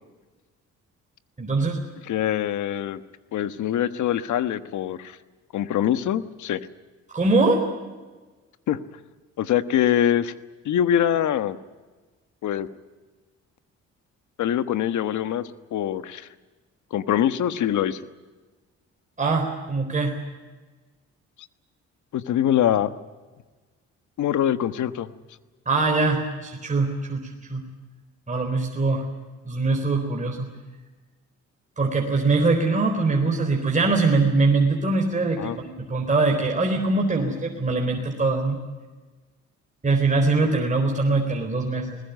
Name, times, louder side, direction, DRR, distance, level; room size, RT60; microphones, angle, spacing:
voice 1, 1.4-1.8 7.1-7.6 19.2-20.1 25.7-27.2 27.5-27.6 28.3-29.0 29.4-30.5 31.8-38.6 39.8-42.0, right 3 dB, 25° right, 1 dB, 4.1 m, -22 dB
voice 2, 2.0-3.0 3.3-5.2 5.5-6.6 8.7-8.8 9.4-10.3 10.6-11.6 12.4-12.7 14.4-15.4 15.7-16.3 16.9-18.0 22.1-22.9 24.2-25.1 35.4-35.6, left 10 dB, 75° left, 12 dB, 1.3 m, -23 dB
20.5 x 20.0 x 9.3 m, 1.3 s
cardioid pair, 90°, 30 cm